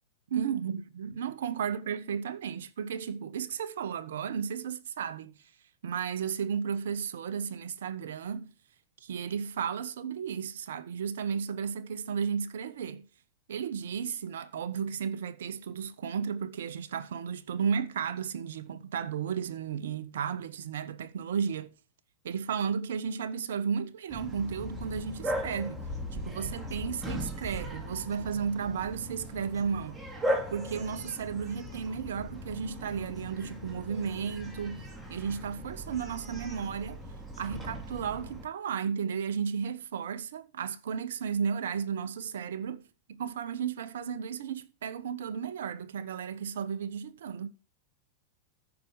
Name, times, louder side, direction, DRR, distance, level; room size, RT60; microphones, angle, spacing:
voice 1, 0.3-5.3 5.8-8.5 9.0-13.1 13.5-21.7 22.2-25.8 26.1-30.0 30.5-37.0 37.4-47.5, right 7 dB, 65° right, 1.2 m, -34 dB
Bark, 24.1-38.5, equal, 10° right, 3.3 m, -38 dB
14.0 x 6.2 x 5.1 m
figure-of-eight pair, 95°, 0 cm